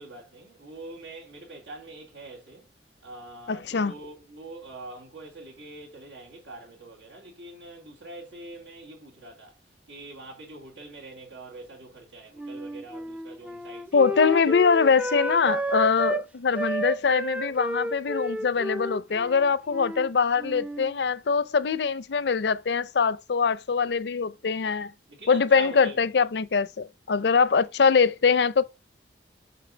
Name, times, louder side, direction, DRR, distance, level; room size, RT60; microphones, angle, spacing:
voice 1, 0.0-2.7 3.0-9.6 9.9-14.4 25.1-26.2, right 2 dB, 90° right, 3.1 m, -44 dB
voice 2, 3.5-3.9 13.9-24.9 25.3-28.6, left 5 dB, 70° left, 0.5 m, -23 dB
Wind instrument woodwind instrument, 12.4-16.2 16.5-20.1 20.4-20.9, right 1 dB, 5° right, 0.3 m, -32 dB
6.7 x 5.6 x 3.9 m
head